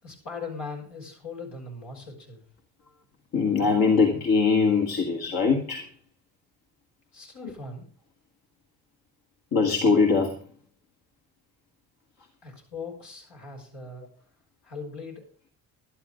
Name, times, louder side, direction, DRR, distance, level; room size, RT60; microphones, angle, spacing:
voice 1, 0.0-2.4 7.1-7.9 12.4-14.1 14.6-15.3, left 4 dB, 75° left, -1 dB, 6.3 m, -39 dB
voice 2, 3.3-5.9 9.5-10.4, left 4 dB, 55° left, 1 dB, 2.2 m, -22 dB
12.0 x 11.5 x 5.2 m, 0.44 s
supercardioid pair, 60°, 42 cm